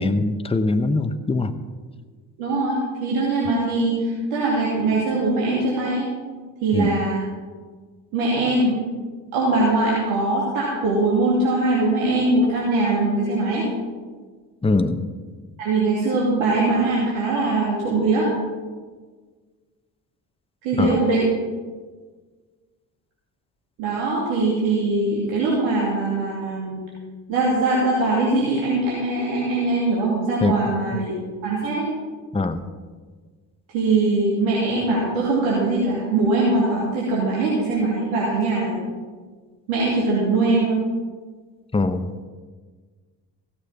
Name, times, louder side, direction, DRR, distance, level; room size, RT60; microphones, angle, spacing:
voice 1, 0.0-1.5 6.7-7.0 14.6-15.1 20.8-21.0 30.4-31.0 32.3-32.7 41.7-42.1, left 3 dB, 10° left, 9 dB, 0.9 m, -22 dB
voice 2, 2.4-6.1 6.6-7.2 8.1-8.8 9.3-13.6 15.6-18.3 20.6-21.2 23.8-26.8 27.3-31.1 31.4-31.9 33.7-38.8 39.7-40.8, right 2 dB, 70° right, -5 dB, 2.8 m, -21 dB
16.0 x 7.0 x 5.8 m, 1.5 s
hypercardioid pair, 55°, 48 cm